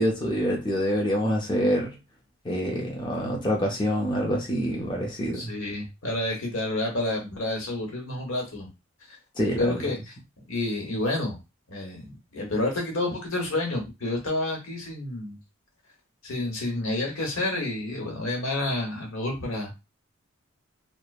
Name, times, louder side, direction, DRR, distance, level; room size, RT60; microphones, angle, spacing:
voice 1, 0.0-1.9 2.4-5.5 9.4-9.8, equal, 20° left, -1 dB, 0.6 m, -26 dB
voice 2, 5.3-8.7 9.6-10.0 10.5-11.4 11.7-15.4 16.2-19.7, left 2 dB, 80° left, 1 dB, 1.0 m, -29 dB
3.0 x 2.0 x 2.4 m, 0.25 s
head